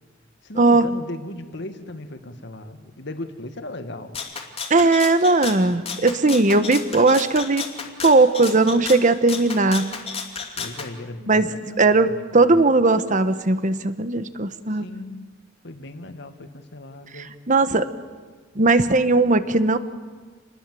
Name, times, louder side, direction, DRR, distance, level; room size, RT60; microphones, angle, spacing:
voice 1, 0.4-4.2 10.6-12.6 14.7-15.3 15.6-17.3, left 1 dB, 60° left, 8 dB, 1.9 m, -37 dB
Rattle (instrument), 4.1-10.9, left 5 dB, 30° left, 2.6 m, -33 dB
voice 2, 4.7-7.7 8.0-9.9 11.3-11.5 11.8-14.8 17.5-17.8 18.5-19.8, right 3 dB, 40° right, 11 dB, 1.2 m, -18 dB
27.5 x 20.5 x 7.8 m, 1.5 s
head